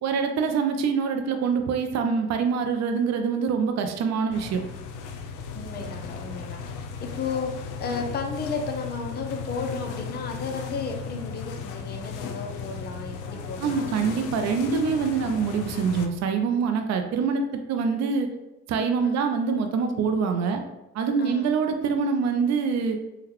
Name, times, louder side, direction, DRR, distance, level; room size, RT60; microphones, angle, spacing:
voice 1, 0.0-4.6 13.6-18.3 18.7-20.6 20.9-23.0, right 5 dB, 60° right, 6 dB, 0.5 m, -25 dB
sound 1, 4.3-16.1, left 5 dB, 85° left, 0.5 m, -36 dB
voice 2, 5.5-14.4 19.0-19.2 21.2-21.5, left 4 dB, 35° left, 3 dB, 0.5 m, -34 dB
3.7 x 2.2 x 2.9 m, 0.96 s
cardioid pair, 90°, 30 cm